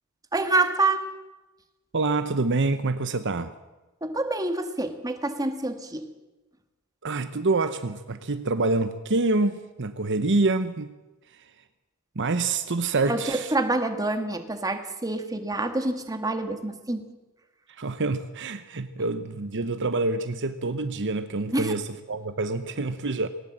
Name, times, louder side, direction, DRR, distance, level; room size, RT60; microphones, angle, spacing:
voice 1, 0.3-1.0 4.0-6.1 13.1-17.0 21.5-21.7, right 2 dB, 15° right, 7 dB, 1.7 m, -27 dB
voice 2, 1.9-3.5 7.0-10.9 12.2-13.5 17.8-23.3, right 3 dB, 55° right, 11 dB, 0.9 m, -26 dB
19.5 x 19.0 x 7.5 m, 1.1 s
head